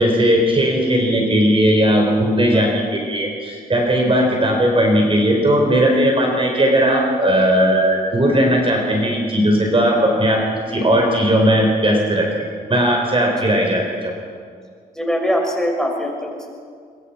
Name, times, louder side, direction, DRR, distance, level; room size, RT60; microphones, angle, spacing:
voice 1, 0.0-10.4 10.7-13.8, equal, 35° right, 1 dB, 4.7 m, -17 dB
voice 2, 14.9-16.5, equal, 5° left, 0 dB, 6.3 m, -23 dB
24.5 x 23.0 x 5.9 m, 2.1 s
cardioid pair, 80°, 16 cm